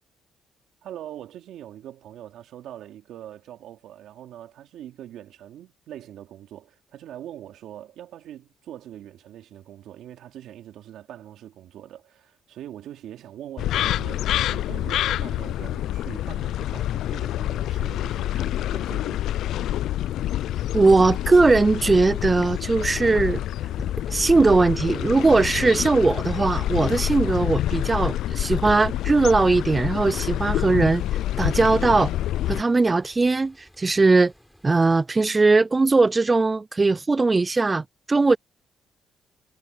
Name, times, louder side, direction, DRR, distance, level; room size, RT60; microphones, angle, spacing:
voice 1, 0.8-19.2, right 11 dB, 80° right, 2.9 m, -42 dB
sound 1, 13.6-32.6, left 13 dB, 80° left, 0.4 m, -27 dB
voice 2, 20.7-23.4 24.1-31.0 31.4-32.1 32.5-34.3 34.6-38.4, right 3 dB, 25° right, 0.3 m, -19 dB
sound 2, 20.8-35.0, equal, 5° left, 5.1 m, -46 dB
cardioid pair, 90°, 0 cm